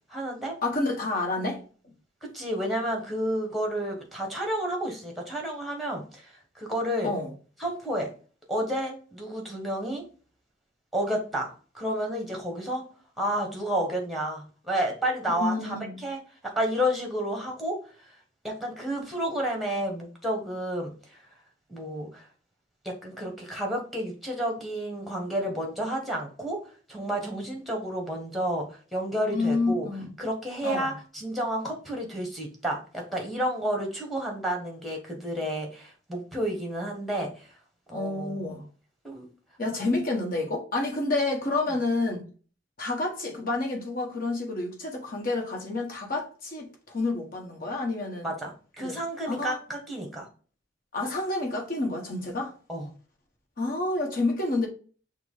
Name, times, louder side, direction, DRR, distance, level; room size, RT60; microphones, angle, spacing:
voice 1, 0.1-0.5 2.2-7.1 7.6-8.1 8.5-10.0 10.9-12.8 13.2-16.2 16.5-17.8 18.4-20.9 21.7-22.2 22.8-26.6 26.9-29.9 30.2-37.3 37.9-38.5 39.0-39.3 48.2-50.3 52.7-52.9, equal, ahead, 1.2 m, -31 dB
voice 2, 0.6-1.6 7.0-7.3 15.3-16.0 29.3-30.1 30.6-30.9 37.9-38.6 39.6-42.2 42.8-48.3 48.8-49.0 49.3-49.6 50.9-52.5 53.6-54.7, left 2 dB, 50° left, 1.2 m, -29 dB
5.9 x 2.2 x 3.6 m
head